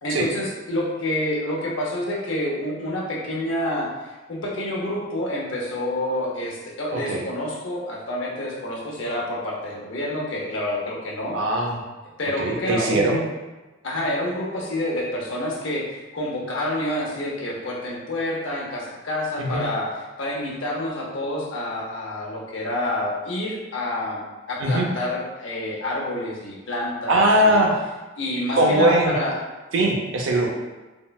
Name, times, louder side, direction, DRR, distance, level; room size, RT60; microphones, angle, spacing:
voice 1, 0.0-3.9 4.3-11.4 12.2-13.2 13.8-19.9 20.2-24.2 24.5-27.6 28.2-29.3, left 1 dB, 70° left, -4 dB, 0.7 m, -28 dB
voice 2, 6.9-7.3 11.3-11.8 12.4-13.2 19.4-19.6 24.6-24.9 27.1-27.7 28.5-29.1 29.7-30.5, right 1 dB, 80° right, 0 dB, 0.5 m, -20 dB
3.6 x 2.1 x 2.3 m, 1.2 s
head